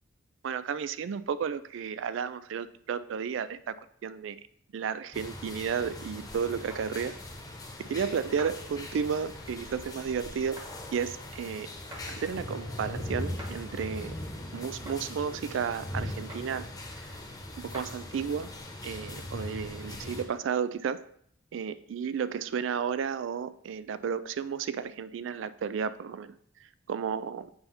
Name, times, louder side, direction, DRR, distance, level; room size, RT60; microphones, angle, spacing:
voice 1, 0.4-3.7 4.0-4.4 4.7-7.1 7.9-11.7 12.1-14.2 14.5-16.7 16.9-17.1 17.6-18.5 18.8-21.0 21.5-26.4 26.9-27.5, right 7 dB, 65° right, 15 dB, 0.3 m, -33 dB
sound 1, 5.1-20.2, left 1 dB, 20° left, 0.9 m, -40 dB
sound 2, 6.7-6.9 8.4-8.6 10.6-10.7 11.9-12.1 13.4-13.6 14.9-15.0 16.3-16.5 17.7-17.9, equal, 20° right, 1.1 m, -43 dB
Race car auto racing / Accelerating revving vroom, 9.2-14.1, right 1 dB, 80° right, 0.9 m, -56 dB
7.8 x 2.7 x 5.6 m, 0.67 s
head